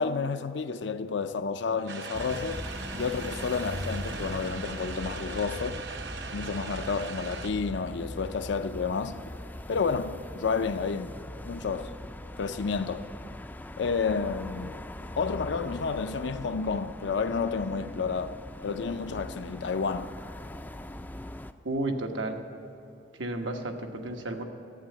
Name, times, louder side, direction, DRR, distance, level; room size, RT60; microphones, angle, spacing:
voice 1, 0.0-2.6 2.9-5.9 6.3-9.2 9.7-11.1 11.4-12.0 12.4-13.1 13.8-14.8 15.2-20.2, left 5 dB, 75° left, 0.5 m, -30 dB
sound 1, 1.9-7.5, right 5 dB, 65° right, 0.8 m, -40 dB
sound 2, 2.1-21.5, left 1 dB, 10° left, 0.3 m, -41 dB
voice 2, 21.6-22.4 23.2-24.4, right 2 dB, 90° right, 1.2 m, -32 dB
11.5 x 8.5 x 9.1 m
head